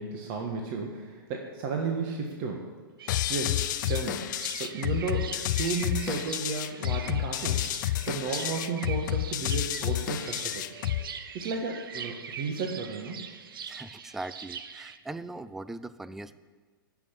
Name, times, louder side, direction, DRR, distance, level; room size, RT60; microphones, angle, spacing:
voice 1, 0.0-2.6 3.3-10.7 11.3-13.2, right 4 dB, 40° right, 2 dB, 1.5 m, -33 dB
sound 1, 3.0-15.0, right 7 dB, 70° right, 0.9 m, -42 dB
sound 2, 3.1-11.1, left 14 dB, 55° left, 0.5 m, -30 dB
voice 2, 13.7-16.4, right 2 dB, 5° right, 15 dB, 0.3 m, -40 dB
14.5 x 6.1 x 8.3 m, 1.5 s
hypercardioid pair, 115°, 12 cm